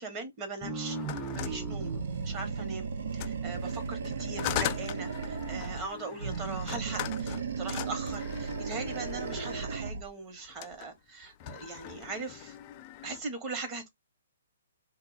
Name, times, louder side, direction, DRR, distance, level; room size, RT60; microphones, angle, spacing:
voice 1, 0.0-1.9 2.2-12.6 13.0-13.9, right 3 dB, 25° right, 1.0 m, -40 dB
sound 1, 0.6-3.8, right 3 dB, 5° right, 0.7 m, -39 dB
sound 2, 0.9-2.5 3.1-9.7 10.5-10.9 11.2-13.2, left 12 dB, 35° left, 0.3 m, -40 dB
Animal, 1.4-5.9 6.2-10.1, right 5 dB, 70° right, 0.6 m, -35 dB
2.6 x 2.3 x 3.9 m
hypercardioid pair, 140°, 0 cm